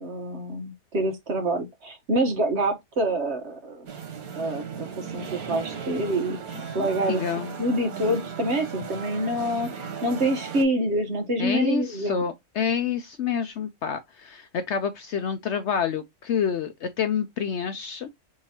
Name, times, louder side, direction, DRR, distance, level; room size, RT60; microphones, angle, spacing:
voice 1, 0.0-3.9 4.3-7.2 7.6-12.2, right 1 dB, 50° right, 1.3 m, -26 dB
sound 1, 3.9-10.6, right 6 dB, 85° right, 1.5 m, -36 dB
voice 2, 6.8-7.5 11.4-18.1, left 7 dB, 65° left, 0.7 m, -28 dB
4.5 x 3.7 x 2.8 m
omnidirectional pair, 1.5 m